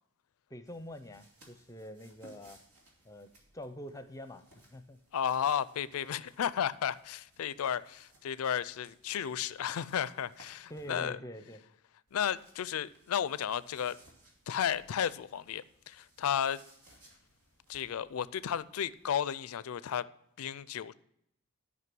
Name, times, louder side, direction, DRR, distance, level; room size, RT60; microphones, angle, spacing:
voice 1, 0.5-2.6 3.0-4.4 4.7-5.0 10.7-11.6, left 1 dB, 15° left, 10 dB, 0.6 m, -45 dB
sound 1, 0.6-11.1 12.1-19.2, right 1 dB, 85° right, 2.4 m, -63 dB
voice 2, 5.1-11.2 12.1-14.0 14.5-16.6 17.7-20.1 20.4-20.9, left 9 dB, 70° left, 17 dB, 0.4 m, -33 dB
11.0 x 5.5 x 6.0 m, 0.75 s
head